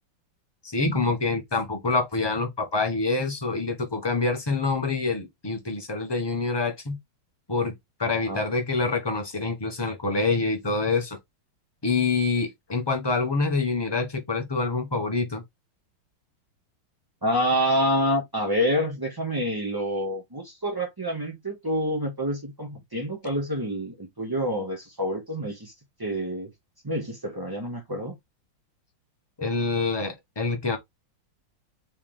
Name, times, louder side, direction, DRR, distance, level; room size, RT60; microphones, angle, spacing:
voice 1, 0.6-7.0 7.5-7.7 8.0-11.2 11.8-15.4 29.4-30.8, left 3 dB, 30° left, 0.4 m, -26 dB
voice 2, 17.2-25.7 26.0-26.5 26.8-28.2, equal, 35° right, 0.3 m, -27 dB
4.6 x 3.1 x 3.6 m
omnidirectional pair, 2.2 m